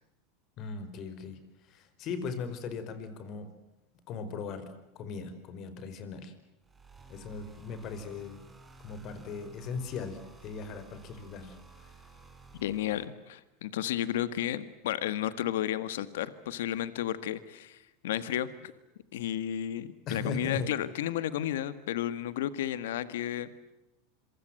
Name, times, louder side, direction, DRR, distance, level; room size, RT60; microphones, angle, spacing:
voice 1, 0.6-1.4 1.7-3.5 4.1-4.7 4.9-6.3 7.1-8.4 8.8-12.0 20.1-20.7, left 5 dB, 45° left, 11 dB, 5.0 m, -38 dB
sound 1, 6.6-13.0, right 4 dB, 10° right, 4.8 m, -54 dB
voice 2, 12.5-18.7 19.1-23.5, left 12 dB, 80° left, 14 dB, 1.7 m, -33 dB
26.5 x 24.5 x 7.8 m, 0.93 s
supercardioid pair, 125°, 0 cm